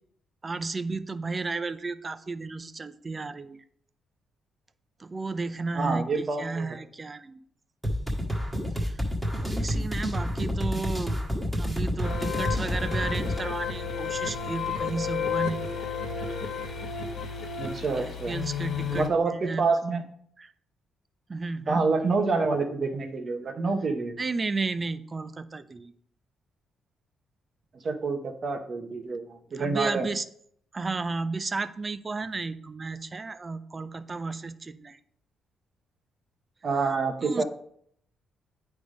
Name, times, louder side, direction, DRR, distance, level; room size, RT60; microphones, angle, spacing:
voice 1, 0.4-3.6 5.0-7.4 8.7-9.0 9.4-11.2 11.5-15.6 18.0-19.6 20.4-20.5 21.3-21.9 24.2-25.9 29.6-30.2 30.7-35.0 37.2-37.4, right 3 dB, 30° right, 13 dB, 0.5 m, -33 dB
voice 2, 5.7-6.8 9.7-9.8 17.6-18.3 18.9-20.0 21.7-24.2 27.7-30.1 36.6-37.4, right 4 dB, 45° right, 5 dB, 1.2 m, -27 dB
sound 1, 7.8-13.4, equal, 5° right, 1.6 m, -29 dB
sound 2, 12.0-19.1, left 6 dB, 65° left, 1.3 m, -32 dB
9.1 x 3.5 x 5.1 m, 0.65 s
cardioid pair, 90°, 0 cm